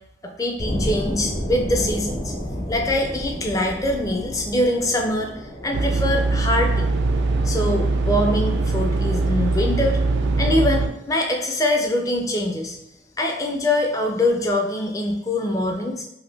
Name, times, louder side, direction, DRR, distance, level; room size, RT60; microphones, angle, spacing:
voice 1, 0.2-6.9 7.4-10.0 10.4-12.8 13.2-16.0, left 1 dB, 20° left, 2 dB, 0.4 m, -23 dB
sound 1, 0.6-11.4, equal, 50° left, 0.8 m, -32 dB
sound 2, 5.7-10.9, right 3 dB, 90° right, 0.3 m, -21 dB
2.8 x 2.6 x 3.2 m, 0.79 s
head